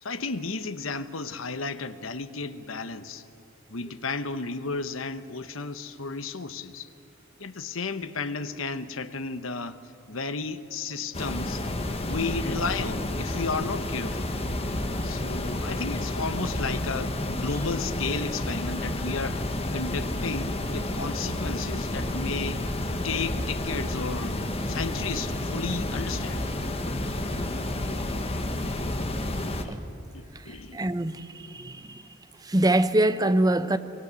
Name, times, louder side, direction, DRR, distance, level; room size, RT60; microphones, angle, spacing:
voice 1, 0.0-3.2 3.7-6.9 7.4-9.8 10.1-11.8 12.1-14.3 15.0-22.6 23.0-26.4 29.6-29.8 30.1-30.9, left 4 dB, 80° left, 1.1 m, -33 dB
sound 1, 11.1-29.6, left 1 dB, 30° left, 1.4 m, -30 dB
voice 2, 30.5-32.1 32.4-33.8, right 1 dB, 20° right, 0.8 m, -24 dB
23.5 x 23.5 x 8.3 m
head